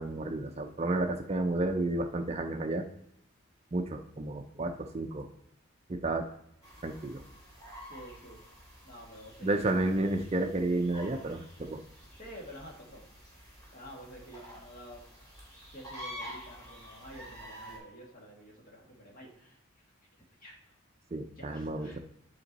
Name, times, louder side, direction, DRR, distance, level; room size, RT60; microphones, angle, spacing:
voice 1, 0.0-2.9 3.7-5.3 5.9-6.3 6.8-7.2 9.4-11.8 21.1-22.0, right 2 dB, 30° right, 5 dB, 0.4 m, -31 dB
sound 1, 6.6-17.8, equal, 15° left, 2.6 m, -49 dB
voice 2, 7.9-8.4 8.8-9.9 12.2-13.0 13.7-15.1 15.7-19.6 20.4-20.7 21.4-22.0, equal, 40° left, -2 dB, 1.8 m, -49 dB
8.8 x 4.5 x 4.0 m, 0.79 s
head